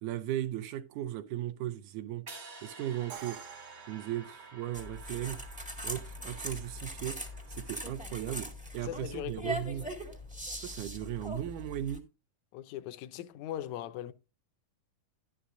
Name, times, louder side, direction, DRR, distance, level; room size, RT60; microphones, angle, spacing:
voice 1, 0.0-2.3 2.6-3.4 3.9-5.4 5.8-7.2 7.5-9.9 10.6-12.0, right 12 dB, 80° right, 1.9 m, -37 dB
sound 1, 2.3-8.4, right 3 dB, 30° right, 0.8 m, -52 dB
Crash cymbal, 3.1-5.0, right 8 dB, 55° right, 1.5 m, -48 dB
sound 2, 4.7-12.0, equal, 10° right, 0.3 m, -41 dB
voice 2, 8.8-9.9 12.5-14.1, left 13 dB, 75° left, 1.7 m, -40 dB
11.5 x 11.0 x 2.5 m
omnidirectional pair, 3.8 m